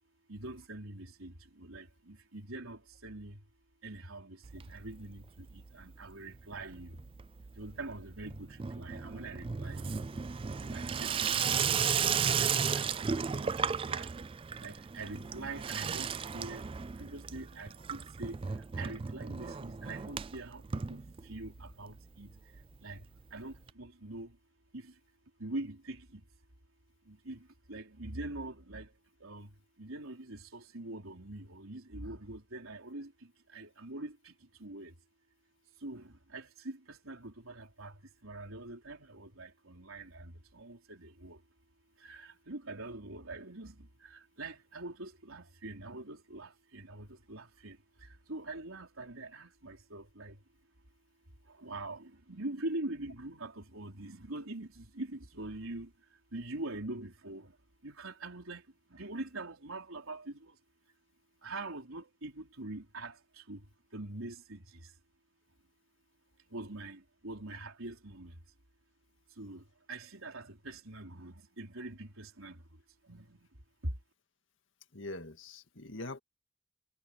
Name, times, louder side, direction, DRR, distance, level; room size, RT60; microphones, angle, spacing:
voice 1, 0.3-3.4 3.8-7.0 7.6-10.0 10.6-11.1 11.4-11.8 12.1-13.0 13.4-14.1 14.6-16.6 17.0-18.4 18.8-22.3 22.8-23.0 23.3-24.3 24.7-24.9 25.4-26.2 27.1-28.9 29.2-29.5 29.8-33.1 33.5-34.3 34.6-34.9 35.8-37.9 38.2-41.4 42.0-47.8 48.0-50.4 51.6-55.9 56.3-57.5 57.8-58.6 58.9-60.5 61.4-63.2 63.5-63.6 63.9-64.6 66.5-68.4 69.4-72.6 73.1-73.4, right 2 dB, 85° right, 4.0 m, -44 dB
Water tap faucet / Sink (filling or washing), 4.4-5.2 5.5-6.0 6.3-21.6 21.9-22.0 22.2-22.3 22.5-22.6 23.7-23.8, right 6 dB, 25° right, 0.3 m, -35 dB
voice 2, 74.9-76.2, left 2 dB, 65° left, 2.0 m, -43 dB
head